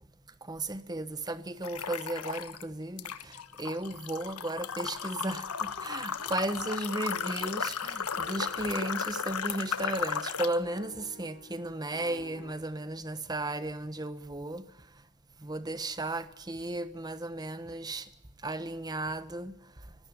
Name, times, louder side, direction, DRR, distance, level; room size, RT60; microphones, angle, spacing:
voice 1, 0.4-14.7 15.4-18.1 18.4-19.5, right 2 dB, 20° right, 1.2 m, -35 dB
sound 1, 1.6-2.6 3.0-10.6, left 6 dB, 90° left, 1.4 m, -35 dB
sound 2, 6.2-12.5, left 3 dB, 65° left, 2.5 m, -52 dB
24.0 x 16.5 x 9.9 m
head